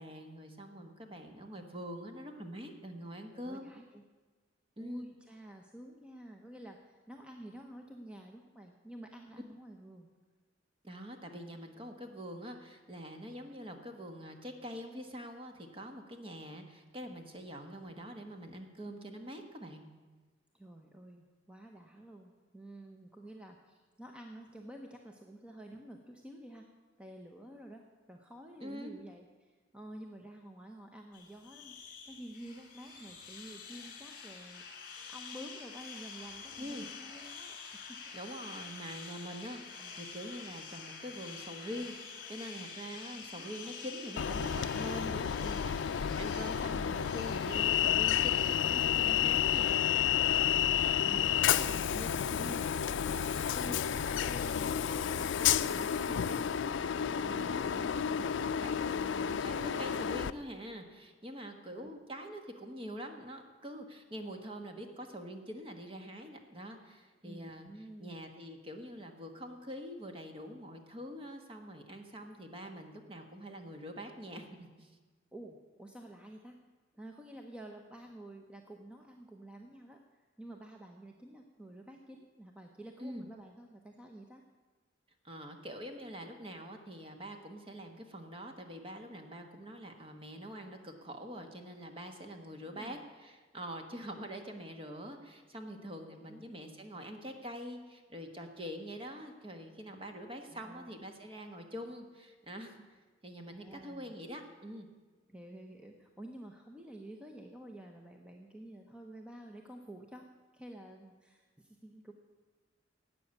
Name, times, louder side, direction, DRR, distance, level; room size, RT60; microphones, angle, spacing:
voice 1, 0.0-3.7 4.8-5.1 10.8-19.9 28.6-28.9 36.6-36.9 38.1-49.7 52.4-52.7 57.2-67.7 68.0-74.9 83.0-83.3 85.2-102.8 103.2-104.9, equal, 30° right, 5 dB, 1.4 m, -45 dB
voice 2, 3.3-4.0 4.8-10.1 20.5-26.7 27.0-38.0 38.5-38.8 39.8-40.0 43.3-43.8 46.1-46.3 47.0-47.1 50.7-52.6 53.0-56.6 57.3-58.0 61.7-61.9 67.2-68.2 75.3-76.6 76.9-84.4 92.7-93.0 94.1-94.3 96.1-96.4 100.5-100.9 103.4-104.1 105.3-110.3 110.5-112.1, right 1 dB, 5° right, 2 dB, 0.8 m, -50 dB
sound 1, 31.1-50.1, left 5 dB, 50° left, 2.3 m, -48 dB
Train, 44.2-60.3, left 9 dB, 70° left, 0.4 m, -31 dB
12.0 x 8.4 x 8.3 m, 1.3 s
head